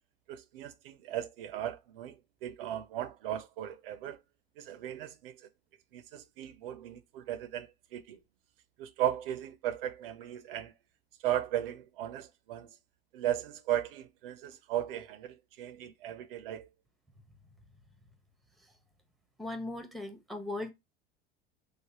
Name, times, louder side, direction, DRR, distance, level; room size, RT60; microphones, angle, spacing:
voice 1, 0.3-4.2 4.6-5.4 5.9-8.2 8.8-10.7 11.2-12.7 13.1-16.7, right 12 dB, 70° right, 0.5 m, -36 dB
voice 2, 19.4-20.7, left 2 dB, ahead, 0.7 m, -38 dB
3.1 x 2.3 x 2.9 m
hypercardioid pair, 80°, 30 cm